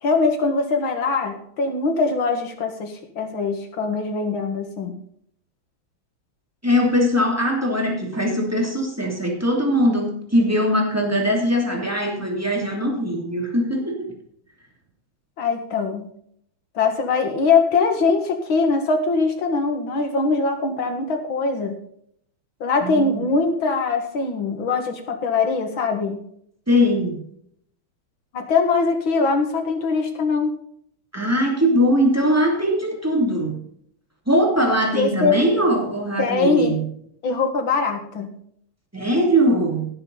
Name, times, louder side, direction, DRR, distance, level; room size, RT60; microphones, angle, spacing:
voice 1, 0.0-4.9 15.4-16.1 16.7-21.8 22.6-26.2 28.3-30.5 34.9-35.4 36.2-36.8 37.2-38.3, left 4 dB, 75° left, 5 dB, 2.7 m, -22 dB
voice 2, 6.6-14.1 22.8-23.2 26.7-27.2 31.1-33.6 34.3-36.8 38.9-39.9, equal, 5° right, 0 dB, 2.8 m, -21 dB
17.5 x 7.9 x 4.0 m, 0.67 s
omnidirectional pair, 2.2 m